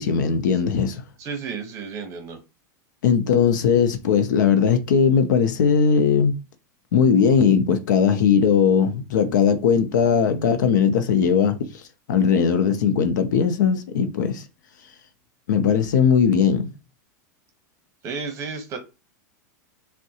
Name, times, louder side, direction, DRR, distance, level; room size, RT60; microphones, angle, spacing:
voice 1, 0.0-1.0 3.0-6.3 6.9-11.6 12.1-14.4 15.5-16.7, left 7 dB, 90° left, 0.6 m, -19 dB
voice 2, 1.2-2.4 18.0-18.8, right 5 dB, 30° right, 0.8 m, -32 dB
3.6 x 2.1 x 2.8 m
supercardioid pair, 155°, 10 cm